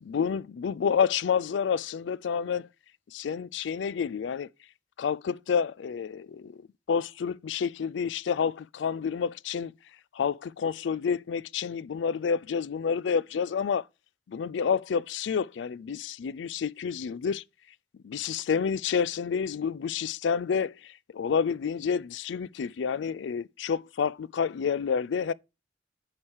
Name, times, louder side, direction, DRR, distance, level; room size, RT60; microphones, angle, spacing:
voice 1, 0.0-2.7 3.1-4.5 5.0-6.6 6.9-9.7 10.1-13.8 14.3-17.4 18.0-25.3, left 6 dB, 85° left, 0.4 m, -29 dB
8.6 x 4.9 x 4.6 m
head